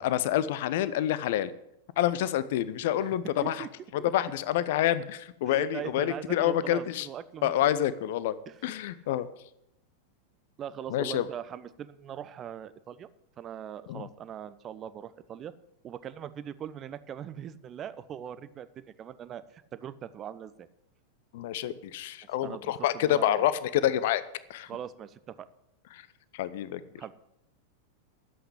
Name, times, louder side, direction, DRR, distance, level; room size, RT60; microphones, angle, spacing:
voice 1, 0.0-1.5 2.0-3.7 4.0-7.1 7.4-9.3 10.9-11.2 13.9-14.1 21.3-24.2 24.5-24.7 25.9-26.0 26.3-26.8, left 12 dB, 55° left, 15 dB, 0.7 m, -28 dB
voice 2, 5.4-7.5 8.5-8.9 10.6-13.1 13.4-15.5 15.8-20.7 22.4-23.4 24.7-25.5 27.0-27.1, right 9 dB, 30° right, 15 dB, 0.7 m, -41 dB
11.5 x 8.0 x 8.0 m, 0.82 s
figure-of-eight pair, 90°, 0 cm